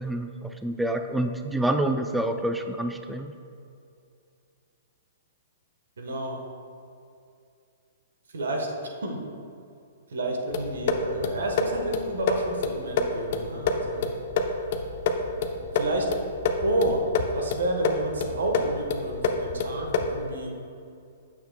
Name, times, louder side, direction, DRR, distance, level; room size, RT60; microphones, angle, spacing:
voice 1, 0.0-3.3, right 1 dB, 5° right, 6 dB, 0.4 m, -27 dB
voice 2, 6.0-6.4 8.3-8.7 9.0-9.2 10.1-14.1 15.7-16.1 16.6-17.0 17.3-20.6, right 1 dB, 75° right, 2 dB, 1.2 m, -30 dB
sound 1, 10.5-20.3, left 4 dB, 55° left, 0.7 m, -28 dB
9.1 x 7.3 x 2.2 m, 2.5 s
hypercardioid pair, 125°, 0 cm